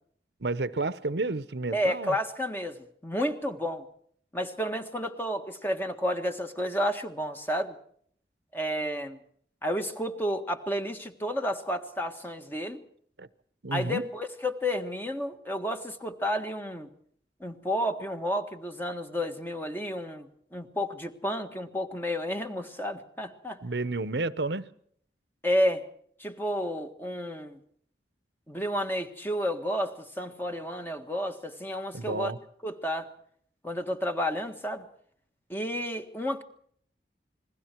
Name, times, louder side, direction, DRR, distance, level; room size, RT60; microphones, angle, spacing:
voice 1, 0.4-2.2 13.2-13.3 13.6-14.0 23.6-24.7 31.9-32.4, right 3 dB, 75° right, 1.0 m, -31 dB
voice 2, 1.7-3.8 4.3-7.8 8.5-9.2 9.6-12.8 13.7-16.9 17.4-23.6 25.4-25.9 26.2-27.6 28.5-32.3 32.6-33.1 33.6-34.9 35.5-36.4, equal, 10° left, 1.6 m, -31 dB
28.5 x 21.5 x 4.6 m
head